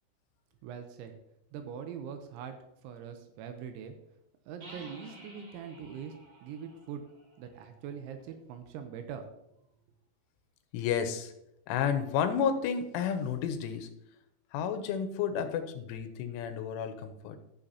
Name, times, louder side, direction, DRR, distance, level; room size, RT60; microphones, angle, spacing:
voice 1, 0.6-1.1 1.5-2.6 2.8-3.9 4.5-6.2 6.4-7.0 7.4-9.3, right 7 dB, 80° right, 6 dB, 2.9 m, -42 dB
sound 1, 4.6-8.2, right 1 dB, 40° right, 2.6 m, -53 dB
voice 2, 10.7-11.3 11.7-13.9 14.5-17.4, left 7 dB, 85° left, 8 dB, 3.1 m, -31 dB
15.0 x 6.6 x 2.8 m, 0.82 s
omnidirectional pair, 5.7 m